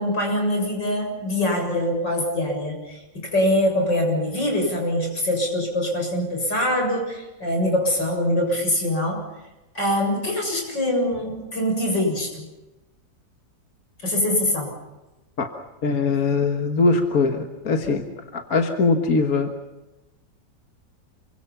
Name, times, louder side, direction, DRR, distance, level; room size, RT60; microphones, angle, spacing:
voice 1, 0.0-9.2 9.7-12.5 14.0-14.7, left 1 dB, 75° left, 2 dB, 7.8 m, -23 dB
voice 2, 15.8-19.6, left 4 dB, 55° left, 4 dB, 1.8 m, -22 dB
28.0 x 24.5 x 5.8 m, 1.0 s
omnidirectional pair, 1.9 m